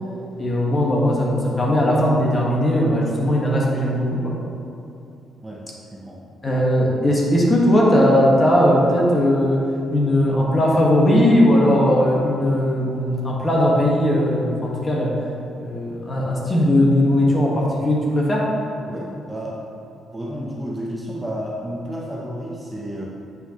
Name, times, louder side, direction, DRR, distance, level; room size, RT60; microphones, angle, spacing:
voice 1, 0.4-4.3 6.4-9.6 9.9-15.1 15.6-18.5, left 1 dB, 30° left, -3 dB, 1.4 m, -18 dB
voice 2, 5.9-6.2 18.8-19.6 20.1-23.0, equal, 10° right, -4 dB, 0.8 m, -31 dB
7.9 x 5.6 x 3.0 m, 2.7 s
cardioid pair, 90°, 0 cm